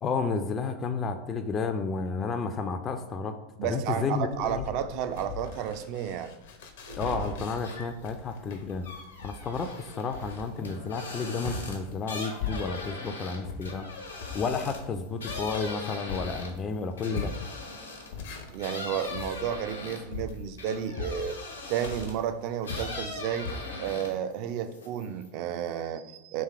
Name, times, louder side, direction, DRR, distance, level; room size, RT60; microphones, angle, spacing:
voice 1, 0.0-4.7 7.0-8.9 9.2-14.0 14.3-17.3, left 4 dB, 30° left, 7 dB, 0.3 m, -32 dB
voice 2, 3.6-6.3 18.5-21.3 21.7-23.5 23.8-26.4, right 9 dB, 50° right, 10 dB, 0.4 m, -32 dB
sound 1, 4.3-13.0 13.4-23.6, left 4 dB, 65° left, 0.7 m, -40 dB
sound 2, 6.8-9.4, right 4 dB, 90° right, 1.2 m, -41 dB
sound 3, 7.6-8.1 8.5-18.2 18.6-22.2 22.6-24.3 24.6-25.3, left 2 dB, 85° left, 1.0 m, -40 dB
3.3 x 3.1 x 4.5 m, 0.95 s
figure-of-eight pair, 90°, 0 cm